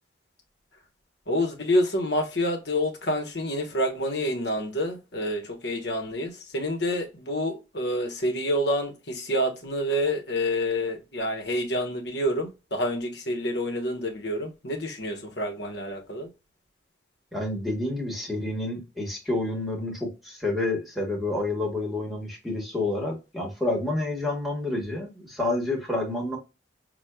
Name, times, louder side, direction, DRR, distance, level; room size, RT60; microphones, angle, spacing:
voice 1, 1.3-16.3, equal, 65° left, 1.1 m, -28 dB
voice 2, 17.3-26.4, left 2 dB, ahead, 1.3 m, -29 dB
6.0 x 2.3 x 2.3 m
head